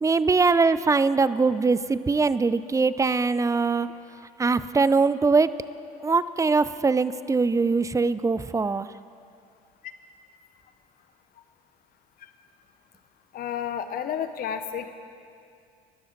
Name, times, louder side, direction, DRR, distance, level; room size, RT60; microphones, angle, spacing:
voice 1, 0.0-3.9 4.4-5.5 6.0-8.9, right 4 dB, 15° right, 16 dB, 0.5 m, -22 dB
voice 2, 13.3-14.9, left 8 dB, 50° left, 9 dB, 0.9 m, -31 dB
23.0 x 12.0 x 3.9 m, 2.4 s
hypercardioid pair, 65°, 20 cm